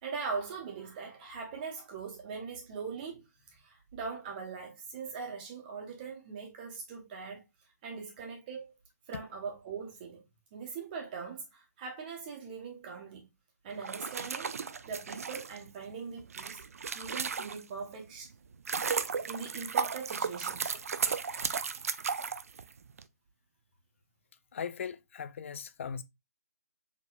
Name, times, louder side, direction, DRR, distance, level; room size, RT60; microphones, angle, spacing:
voice 1, 0.0-7.4 7.8-8.8 9.1-10.2 10.5-13.3 13.6-14.5 14.8-16.6 16.9-18.3 19.3-20.7, right 5 dB, 30° right, 1.6 m, -41 dB
sound 1, 13.7-17.9 18.3-23.0, right 6 dB, 60° right, 0.4 m, -35 dB
voice 2, 24.5-26.0, left 7 dB, 50° left, 0.5 m, -39 dB
4.2 x 3.6 x 2.5 m
figure-of-eight pair, 140°, 9 cm